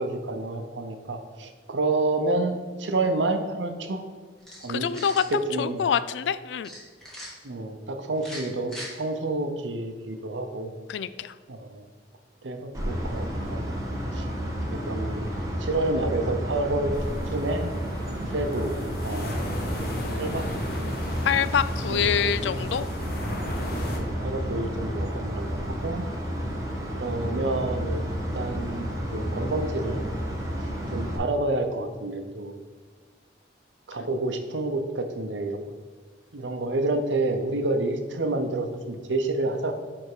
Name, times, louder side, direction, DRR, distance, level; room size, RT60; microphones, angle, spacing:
voice 1, 0.0-4.0 4.6-4.9 5.3-5.8 7.4-10.7 11.5-11.8 12.4-13.6 14.1-14.3 14.7-15.2 15.6-16.9 17.3-17.7 18.3-19.5 19.8-20.5 21.9-22.3 24.0-26.0 26.9-28.0 28.3-30.2 30.9-32.5 33.9-35.6 36.3-39.8, right 2 dB, 85° right, 6 dB, 0.8 m, -29 dB
sound 1, 4.4-5.3 6.6-7.3 8.1-8.9, equal, 5° left, 2.0 m, -40 dB
voice 2, 4.7-5.2 5.6-6.8 10.9-11.3 21.2-22.9, left 7 dB, 75° left, 15 dB, 0.3 m, -25 dB
sound 2, 12.7-31.2, equal, 20° right, 1.4 m, -31 dB
sound 3, 16.9-24.0, left 1 dB, 55° left, 1.0 m, -36 dB
9.5 x 3.5 x 4.9 m, 1.4 s
head